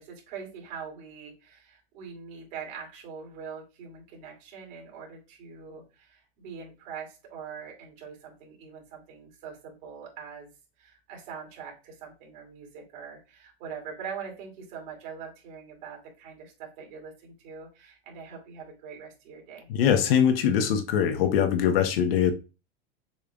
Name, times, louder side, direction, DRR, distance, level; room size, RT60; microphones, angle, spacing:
voice 1, 0.0-10.5 10.8-19.7, right 6 dB, 45° right, 2.6 m, -43 dB
voice 2, 19.7-22.3, left 8 dB, 60° left, 0.9 m, -22 dB
6.9 x 3.2 x 2.4 m
supercardioid pair, 160°, 33 cm